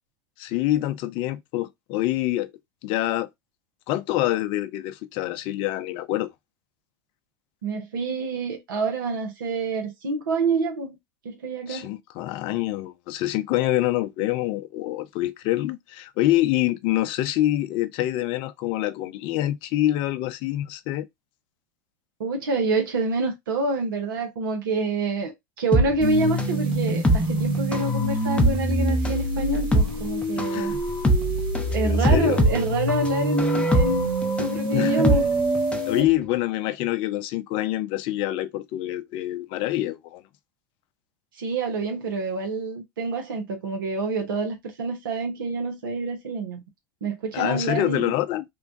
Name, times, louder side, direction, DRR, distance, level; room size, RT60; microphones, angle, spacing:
voice 1, 0.4-2.5 2.8-3.3 3.9-6.3 11.7-21.1 30.3-30.8 31.8-32.4 34.7-35.1 35.9-40.2 47.3-48.4, left 15 dB, 55° left, 0.4 m, -26 dB
voice 2, 7.6-11.0 11.2-11.9 22.2-30.7 31.7-35.2 41.4-46.6 47.0-48.1, right 3 dB, 85° right, 0.7 m, -27 dB
sound 1, 25.7-35.9 36.2-36.3, equal, 10° left, 0.6 m, -24 dB
sound 2, 26.0-36.0, right 2 dB, 45° right, 1.3 m, -26 dB
3.0 x 2.2 x 2.5 m
hypercardioid pair, 90°, 11 cm